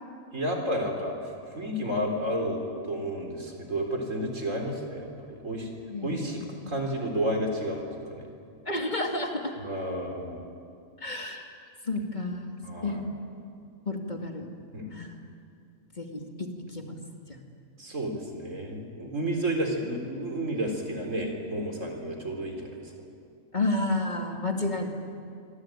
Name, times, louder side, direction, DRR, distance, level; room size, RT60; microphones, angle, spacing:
voice 1, 0.3-1.2 1.5-5.7 6.0-8.3 9.6-10.4 12.6-13.1 14.7-14.9 17.8-22.8, right 1 dB, 65° right, 3 dB, 4.3 m, -31 dB
voice 2, 5.9-6.3 6.5-6.7 8.7-9.5 11.0-11.5 11.9-12.5 12.8-13.0 13.9-14.5 14.9-15.2 16.0-16.2 16.7-17.0 17.3-17.4 19.0-19.1 23.5-24.9, left 2 dB, 30° left, 2 dB, 2.5 m, -31 dB
26.0 x 24.0 x 9.2 m, 2.4 s
omnidirectional pair, 1.4 m